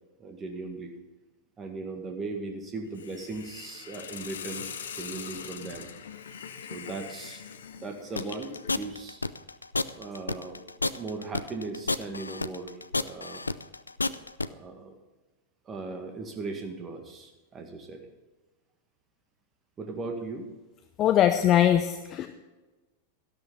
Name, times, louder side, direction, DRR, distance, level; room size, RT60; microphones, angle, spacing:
voice 1, 0.2-0.9 1.6-4.7 4.9-5.9 6.7-7.4 7.8-9.2 10.0-10.7 10.9-13.5 14.4-15.0 15.7-18.0 19.8-20.5, right 3 dB, 25° right, 4 dB, 1.9 m, -38 dB
Hiss, 2.9-8.8, left 7 dB, 65° left, 1.0 m, -42 dB
sound 1, 8.2-14.5, left 3 dB, 80° left, 0.4 m, -30 dB
voice 2, 21.0-22.3, left 11 dB, 35° left, 8 dB, 0.8 m, -21 dB
13.0 x 12.0 x 4.1 m, 1.2 s
figure-of-eight pair, 90°, 0 cm